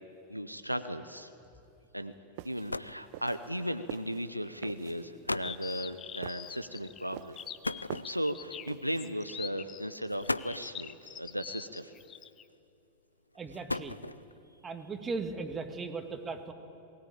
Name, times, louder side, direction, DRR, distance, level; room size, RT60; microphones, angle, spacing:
voice 1, 0.3-1.3 1.9-2.1 2.4-7.6 8.1-11.9, equal, 90° right, 9 dB, 0.7 m, -36 dB
sound 1, 2.1-2.2 2.5-3.1 4.1-4.3 4.9-5.0 5.3-5.6 7.6-8.5 9.4-9.6 10.1-10.8 12.0-12.5 13.3-14.4, left 2 dB, 80° left, 0.4 m, -36 dB
sound 2, 2.4-9.3, right 16 dB, 50° right, 0.6 m, -47 dB
sound 3, 5.4-12.4, left 9 dB, 25° left, 0.7 m, -44 dB
voice 2, 13.3-14.0 14.6-16.5, right 4 dB, 20° right, 6 dB, 2.0 m, -37 dB
22.0 x 17.0 x 8.8 m, 2.7 s
figure-of-eight pair, 90°, 0 cm